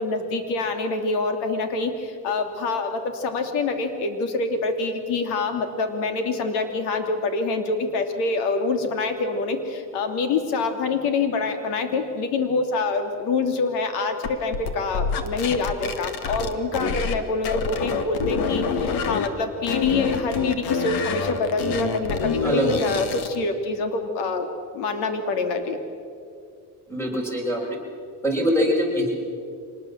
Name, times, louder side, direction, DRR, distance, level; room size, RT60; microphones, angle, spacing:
voice 1, 0.0-24.5 24.7-25.8, left 3 dB, 90° left, 6 dB, 2.9 m, -26 dB
sound 1, 14.2-17.2 17.4-19.3 19.6-23.4, left 5 dB, 65° left, 2.0 m, -26 dB
voice 2, 22.4-22.8 26.9-27.6 28.2-29.2, equal, 5° left, 0 dB, 6.0 m, -23 dB
25.5 x 20.0 x 7.4 m, 2.3 s
cardioid pair, 135°, 39 cm